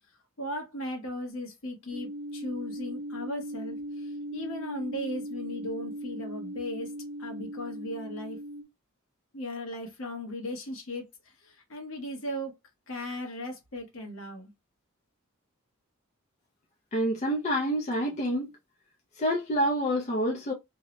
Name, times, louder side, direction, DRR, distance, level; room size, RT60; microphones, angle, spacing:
voice 1, 0.4-6.9 7.2-8.4 9.3-11.1 11.4-12.5 12.9-14.5, left 1 dB, 65° left, 0.9 m, -37 dB
sound 1, 1.9-8.6, equal, 25° right, 0.4 m, -38 dB
voice 2, 16.9-18.5 19.2-20.5, equal, 30° left, 0.4 m, -27 dB
2.7 x 2.0 x 2.7 m
head